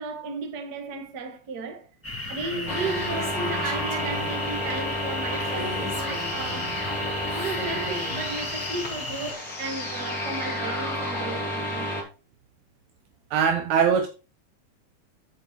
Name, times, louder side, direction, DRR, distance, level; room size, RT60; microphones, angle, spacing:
voice 1, 0.0-1.9 2.3-6.7 7.3-11.9, right 3 dB, 40° right, 1.6 m, -34 dB
sound 1, 2.0-9.3, left 2 dB, 10° left, 0.9 m, -36 dB
Female speech woman speaking, 2.5-4.4 5.4-6.8 7.3-8.2, left 1 dB, 60° left, 6.8 m, -39 dB
sound 2, 2.7-12.0, left 1 dB, 25° left, 3.3 m, -31 dB
voice 2, 13.3-14.1, right 7 dB, 70° right, 2.1 m, -21 dB
14.5 x 5.4 x 3.1 m
omnidirectional pair, 3.8 m